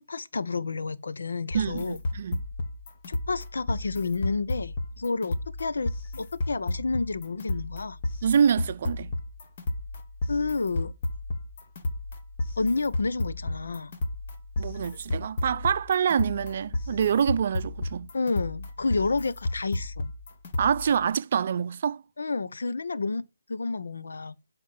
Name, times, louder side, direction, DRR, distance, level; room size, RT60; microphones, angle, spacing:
voice 1, 0.0-2.0 3.1-8.0 10.3-10.9 12.6-13.9 18.1-20.1 22.2-23.2 23.5-24.3, left 3 dB, 85° left, 0.9 m, -30 dB
sound 1, 1.5-21.1, left 2 dB, 40° left, 1.7 m, -33 dB
voice 2, 1.5-2.4 8.2-9.1 14.6-18.1 20.6-22.0, right 7 dB, 45° right, 0.5 m, -26 dB
11.0 x 4.4 x 5.5 m
hypercardioid pair, 165°, 0 cm